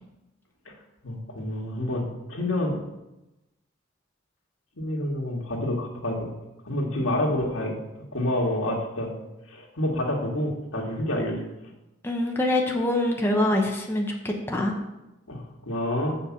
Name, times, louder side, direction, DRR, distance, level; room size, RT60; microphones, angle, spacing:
voice 1, 1.0-2.8 4.8-6.3 6.7-7.8 8.1-9.1 9.5-11.4 15.3-16.2, left 1 dB, 80° left, -1 dB, 1.9 m, -28 dB
voice 2, 12.0-14.7, left 1 dB, 10° left, 0 dB, 0.8 m, -25 dB
6.9 x 5.3 x 7.2 m, 0.97 s
head